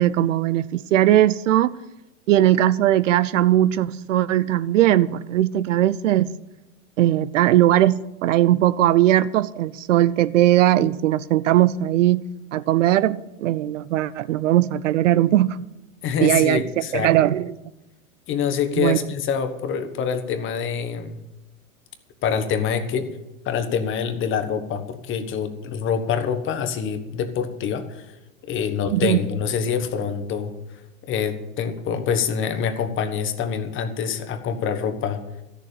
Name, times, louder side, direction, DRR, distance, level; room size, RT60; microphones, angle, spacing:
voice 1, 0.0-1.8 2.3-6.3 7.0-12.2 12.5-15.6 16.2-16.6 16.9-17.5 18.8-19.0 28.9-29.2, right 13 dB, 60° right, 0.6 m, -19 dB
voice 2, 16.0-17.1 18.3-21.2 22.2-23.1 23.4-28.0 28.5-30.5 31.1-35.2, left 7 dB, 30° left, 1.4 m, -25 dB
13.0 x 7.0 x 8.6 m
hypercardioid pair, 110°, 42 cm